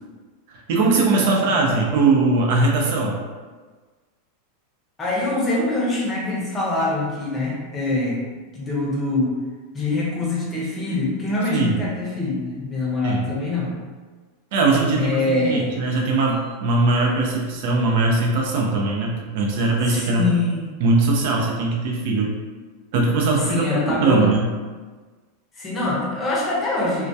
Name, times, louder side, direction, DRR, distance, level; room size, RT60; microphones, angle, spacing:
voice 1, 0.5-3.2 11.5-11.8 13.0-13.2 14.5-20.2 20.8-22.3 22.9-24.5, right 3 dB, 65° right, -1 dB, 0.5 m, -20 dB
voice 2, 5.0-8.2 8.5-9.4 9.7-13.7 14.9-15.7 19.9-20.6 23.4-24.3 25.6-27.1, left 2 dB, 20° left, -5 dB, 0.7 m, -24 dB
2.2 x 2.2 x 2.6 m, 1.4 s
supercardioid pair, 135°, 0 cm